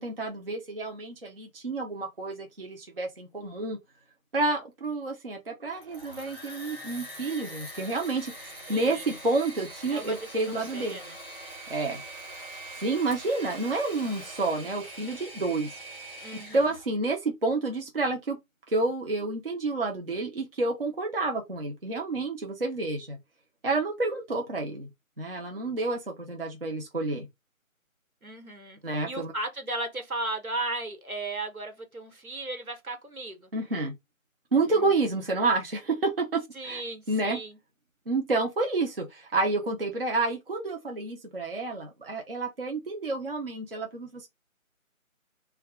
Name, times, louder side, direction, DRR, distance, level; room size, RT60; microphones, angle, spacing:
voice 1, 0.0-3.8 4.3-11.0 11.7-12.0 12.7-15.7 16.5-18.4 18.7-23.2 23.6-24.9 25.2-27.3 28.8-29.3 33.5-33.9 34.5-36.8 37.1-37.4 38.1-44.3, right 3 dB, 45° right, 0.5 m, -29 dB
Engine / Mechanisms, 5.6-16.8, right 1 dB, 20° left, 0.8 m, -43 dB
voice 2, 8.7-9.2 9.9-10.2 10.5-11.2 16.2-16.8 28.2-28.8 29.0-33.5 34.7-34.9 36.5-37.6, right 2 dB, 85° right, 1.2 m, -36 dB
2.6 x 2.2 x 3.5 m
figure-of-eight pair, 160°, 42 cm